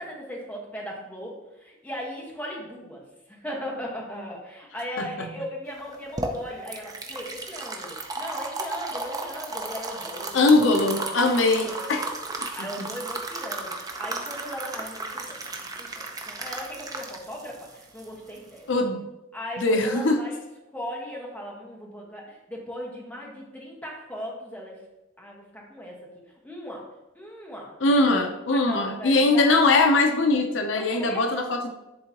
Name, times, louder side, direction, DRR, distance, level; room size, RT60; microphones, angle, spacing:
voice 1, 0.0-3.0 3.3-10.5 10.9-12.1 12.5-18.7 19.3-20.4 20.7-24.8 25.2-26.9 27.1-27.7 28.5-29.6 30.7-31.2, equal, 10° left, -3 dB, 1.3 m, -38 dB
voice 2, 5.0-5.3 10.3-12.0 12.6-12.7 18.7-19.0 19.6-20.2 27.8-31.7, left 2 dB, 75° left, 5 dB, 0.6 m, -21 dB
sound 1, 5.8-18.8, right 2 dB, 20° right, 0.6 m, -34 dB
10.5 x 3.8 x 2.9 m, 0.97 s
head